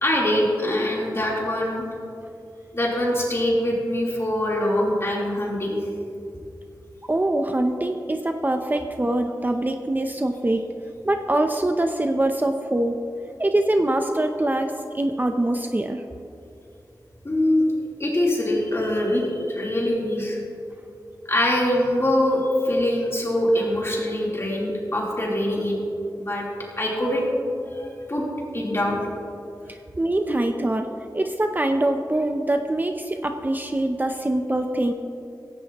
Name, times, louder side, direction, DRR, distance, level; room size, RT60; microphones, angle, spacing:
voice 1, 0.0-1.9 2.7-5.8 17.2-17.6 18.0-20.4 21.3-25.8 26.2-26.5 26.8-27.3 27.7-28.2 28.5-29.0, left 1 dB, 35° left, -4 dB, 3.6 m, -23 dB
voice 2, 7.1-10.6 11.0-13.0 13.4-16.0 29.7-30.9 31.1-34.9, right 1 dB, 25° right, 5 dB, 0.6 m, -24 dB
16.0 x 16.0 x 3.0 m, 2.6 s
wide cardioid pair, 100°, 8 cm